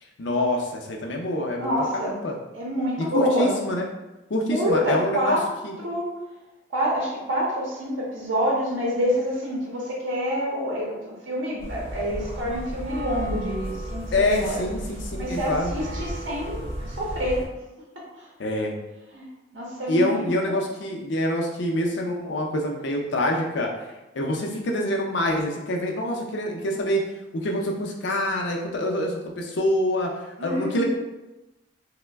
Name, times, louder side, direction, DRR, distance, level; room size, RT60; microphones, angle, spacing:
voice 1, 0.2-2.4 3.1-3.9 4.3-5.4 5.6-5.7 14.1-15.7 18.4-18.7 19.9-27.0 27.3-30.1 30.4-30.8, left 1 dB, 65° left, 1 dB, 0.5 m, -26 dB
voice 2, 1.6-2.2 2.5-3.6 4.5-5.4 5.8-6.0 6.7-14.5 15.2-17.4 18.0-18.3 19.1-20.6 30.4-30.8, equal, 75° right, -3 dB, 0.7 m, -27 dB
sound 1, 11.6-17.5, equal, 30° right, 0.6 m, -34 dB
3.0 x 2.1 x 3.3 m, 1.0 s
head